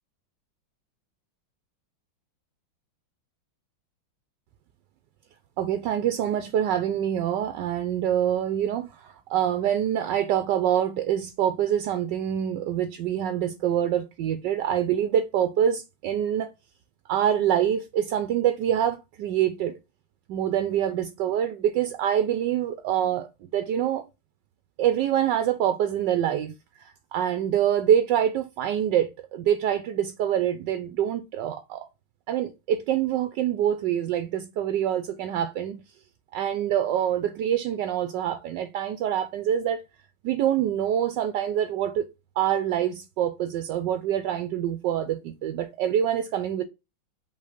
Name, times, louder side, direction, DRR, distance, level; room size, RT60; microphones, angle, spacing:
voice 1, 5.6-16.5 17.1-19.8 20.3-23.3 23.5-24.0 24.8-26.5 26.8-31.9 32.3-35.8 36.3-39.8 40.2-42.1 42.4-46.6, right 10 dB, 75° right, 1.2 m, -25 dB
5.5 x 3.6 x 5.1 m
omnidirectional pair, 2.2 m